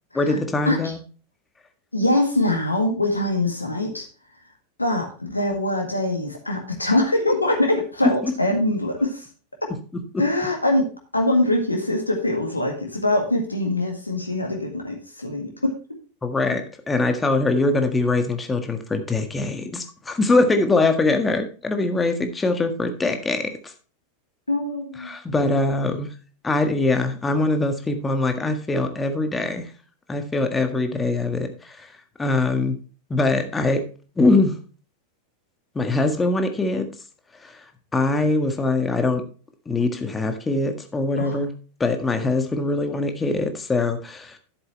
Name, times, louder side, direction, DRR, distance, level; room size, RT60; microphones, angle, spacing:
voice 1, 0.1-1.0 8.2-8.3 10.1-10.2 16.2-23.7 25.0-26.1 26.4-29.7 30.1-31.9 32.2-32.8 33.1-33.8 34.2-34.6 35.7-36.9 37.4-37.6 37.9-39.2 39.6-41.5 41.8-44.4, left 2 dB, 15° left, 6 dB, 1.6 m, -22 dB
voice 2, 1.9-4.1 4.8-9.3 10.2-15.7 24.5-25.1 41.2-41.4, left 1 dB, 85° left, 2 dB, 1.8 m, -23 dB
11.0 x 7.9 x 3.2 m, 0.37 s
figure-of-eight pair, 90°, 0 cm